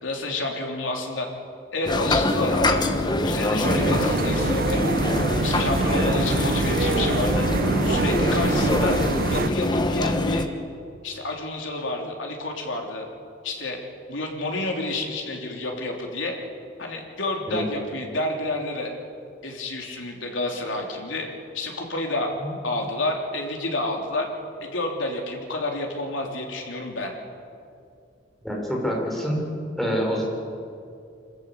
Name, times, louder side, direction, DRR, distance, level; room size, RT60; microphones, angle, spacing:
voice 1, 0.0-1.3 1.7-2.9 3.2-4.8 5.4-7.5 7.8-9.0 9.3-10.5 11.0-13.1 13.4-13.8 14.1-16.4 16.8-18.9 19.4-21.3 21.5-22.3 22.6-24.3 24.6-27.1, left 2 dB, 90° left, 1 dB, 3.5 m, -29 dB
sound 1, 1.8-10.5, left 1 dB, 25° left, 1.1 m, -24 dB
sound 2, 3.6-9.5, right 3 dB, 50° right, 0.7 m, -25 dB
voice 2, 28.4-29.4 29.8-30.2, equal, ahead, -2 dB, 4.9 m, -26 dB
26.0 x 14.0 x 8.3 m, 2.4 s
head